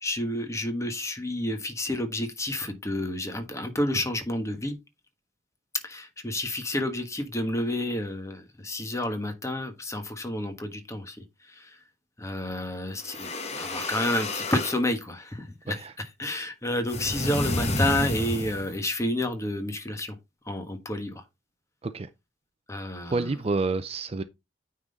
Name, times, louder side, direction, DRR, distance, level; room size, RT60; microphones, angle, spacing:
voice 1, 0.0-4.8 5.8-11.2 11.6-11.7 12.2-20.1 20.5-21.2 22.7-23.4, left 1 dB, 15° left, 1.3 m, -30 dB
sound 1, 13.0-14.8 16.9-18.8, left 2 dB, 35° left, 1.3 m, -30 dB
voice 2, 23.1-24.2, right 3 dB, 35° right, 0.5 m, -28 dB
9.2 x 3.8 x 3.9 m
head